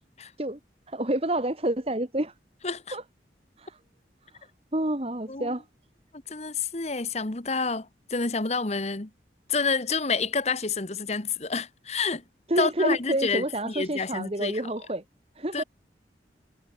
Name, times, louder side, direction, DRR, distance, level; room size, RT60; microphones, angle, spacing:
voice 1, 0.9-2.3 2.9-3.0 3.6-3.8 4.3-4.4 4.7-5.6 12.5-15.0 15.4-15.6, right 1 dB, 35° right, 1.7 m, -28 dB
voice 2, 2.6-3.0 5.3-5.5 6.3-9.1 9.5-12.2 12.6-14.5 15.5-15.6, left 4 dB, 40° left, 1.2 m, -29 dB
head